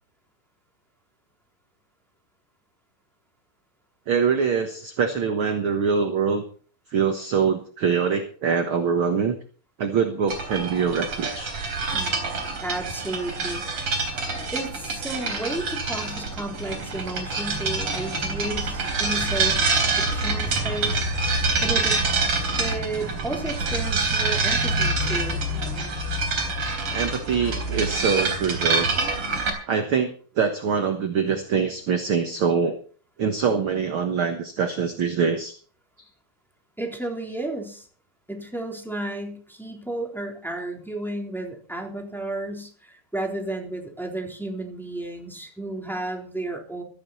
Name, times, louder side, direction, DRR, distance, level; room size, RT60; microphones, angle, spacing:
voice 1, 4.1-6.4 6.9-9.4 9.8-11.5 26.9-28.9 29.7-32.8 33.2-35.6, right 6 dB, 60° right, 6 dB, 1.4 m, -24 dB
sound 1, 10.3-29.5, right 3 dB, 40° right, 4.3 m, -26 dB
voice 2, 11.9-13.6 14.3-19.6 20.0-22.0 22.6-25.4 36.8-37.9 38.3-46.8, right 2 dB, ahead, 0 dB, 3.1 m, -33 dB
16.0 x 14.0 x 4.2 m, 0.43 s
omnidirectional pair, 4.1 m